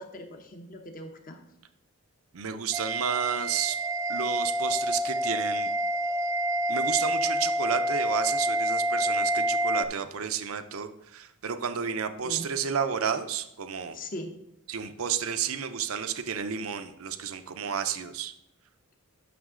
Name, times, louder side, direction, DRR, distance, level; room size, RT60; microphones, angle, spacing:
voice 1, 0.0-1.4 12.2-12.4 13.9-14.3, left 1 dB, 40° left, 4 dB, 0.9 m, -40 dB
voice 2, 2.3-3.8 4.1-5.7 6.7-14.0 14.7-18.3, right 7 dB, 75° right, 9 dB, 0.6 m, -31 dB
sound 1, 2.7-9.9, right 1 dB, 15° right, 0.4 m, -28 dB
9.3 x 6.3 x 3.7 m, 0.82 s
head